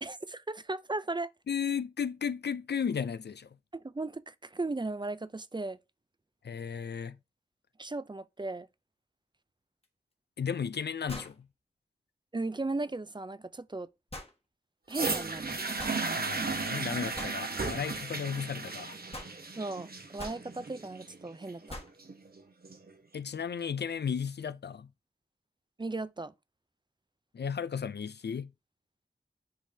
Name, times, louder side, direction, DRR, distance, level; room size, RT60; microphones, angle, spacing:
voice 1, 0.0-1.3 3.7-5.8 7.8-8.7 12.3-13.9 14.9-15.6 19.6-21.8 25.8-26.3, right 2 dB, 25° right, 0.4 m, -36 dB
voice 2, 1.5-3.5 6.4-7.2 10.4-11.5 16.2-19.0 23.1-24.9 27.3-28.5, left 7 dB, 70° left, 0.4 m, -34 dB
sound 1, 9.8-9.9 11.1-11.4 14.1-14.3 15.8-16.0 17.2-17.4 19.1-19.4 20.2-20.4 21.7-22.0, left 1 dB, 35° left, 1.5 m, -42 dB
sound 2, 14.9-22.9 23.7-23.8, right 3 dB, 60° right, 1.0 m, -35 dB
10.0 x 3.7 x 2.7 m
wide cardioid pair, 65°, 18 cm